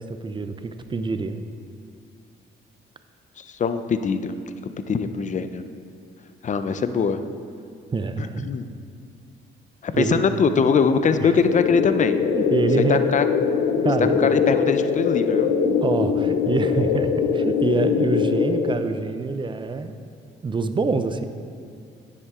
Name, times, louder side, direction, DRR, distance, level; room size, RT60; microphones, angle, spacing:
voice 1, 0.0-1.4 7.9-8.5 9.9-10.2 11.2-11.4 12.3-13.1 13.8-14.2 15.8-19.9 20.4-21.3, right 4 dB, 25° right, 9 dB, 0.5 m, -25 dB
voice 2, 3.6-4.4 4.9-5.6 6.4-7.2 8.4-8.6 9.8-12.2 12.8-13.3 14.2-15.5, left 5 dB, 40° left, 10 dB, 0.5 m, -22 dB
sound 1, 11.4-18.8, left 6 dB, 90° left, 0.6 m, -22 dB
9.7 x 7.5 x 3.7 m, 2.3 s
cardioid pair, 90°, 20 cm